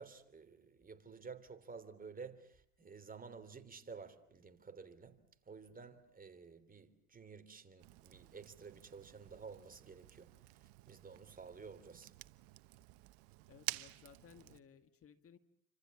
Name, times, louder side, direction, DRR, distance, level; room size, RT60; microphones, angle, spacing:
voice 1, 0.0-12.1, right 5 dB, 25° right, 3.2 m, -53 dB
Fire, 7.8-14.6, right 21 dB, 70° right, 1.1 m, -50 dB
voice 2, 13.5-15.4, left 7 dB, 40° left, 1.9 m, -60 dB
29.0 x 26.0 x 7.3 m
supercardioid pair, 90°, 36 cm